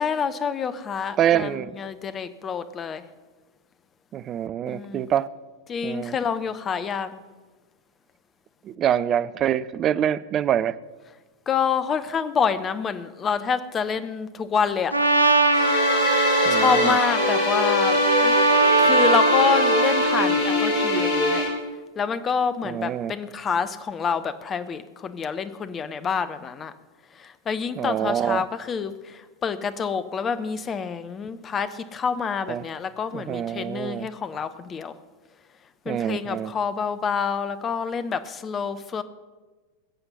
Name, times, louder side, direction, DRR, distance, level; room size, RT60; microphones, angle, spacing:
voice 1, 0.0-3.0 4.7-5.1 5.7-7.2 11.5-15.0 16.5-18.4 18.8-21.4 22.0-26.7 27.1-34.9 35.8-39.0, left 6 dB, 25° left, 0.8 m, -27 dB
voice 2, 1.2-1.8 4.1-5.3 5.8-6.2 8.6-10.8 16.4-17.0 22.6-23.1 27.8-28.4 32.5-32.6 33.1-34.1 35.9-36.5, right 10 dB, 30° right, 0.5 m, -25 dB
Trumpet, 14.9-20.4, right 2 dB, 85° right, 0.8 m, -21 dB
sound 1, 15.5-21.5, left 1 dB, 50° left, 3.4 m, -23 dB
20.5 x 7.9 x 5.5 m
figure-of-eight pair, 90°, 0 cm